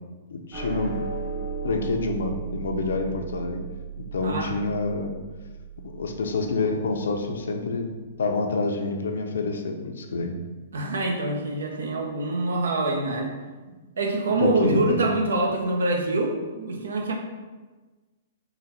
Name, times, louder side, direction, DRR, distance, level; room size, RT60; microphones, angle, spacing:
voice 1, 0.3-1.0 1.6-3.6 4.1-5.2 5.8-7.9 8.2-10.3 14.4-15.0, left 3 dB, 85° left, 4 dB, 0.5 m, -27 dB
sound 1, 0.5-7.1, right 6 dB, 25° right, 1.2 m, -36 dB
voice 2, 4.2-4.5 10.7-13.3 14.0-17.1, right 2 dB, 85° right, 1 dB, 0.7 m, -25 dB
3.9 x 2.2 x 4.2 m, 1.3 s
hypercardioid pair, 140°, 0 cm